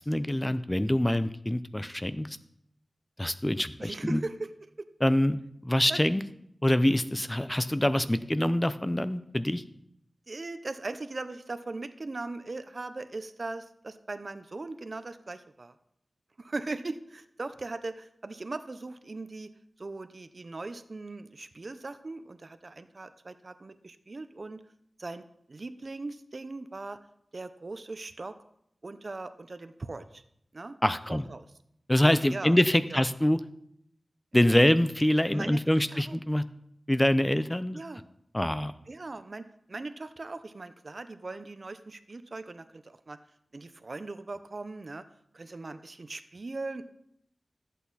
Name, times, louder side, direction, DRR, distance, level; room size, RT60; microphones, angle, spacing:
voice 1, 0.1-2.4 3.2-4.2 5.0-5.4 5.6-6.2 6.6-9.6 30.8-31.2 31.9-33.4 34.3-36.4 36.9-37.8 38.3-38.7, left 1 dB, 15° left, 12 dB, 0.6 m, -25 dB
voice 2, 3.8-4.5 5.9-6.0 10.3-15.7 16.4-19.5 19.8-24.6 25.0-25.2 25.5-27.0 27.3-28.4 28.8-30.2 30.5-30.8 31.1-31.4 32.3-32.6 32.9-33.0 34.3-34.6 35.3-35.6 35.9-36.2 37.7-38.0 38.9-43.2 43.5-45.0 45.3-46.8, right 3 dB, 55° right, 11 dB, 0.7 m, -39 dB
13.5 x 8.3 x 4.2 m, 0.74 s
wide cardioid pair, 55°, 0 cm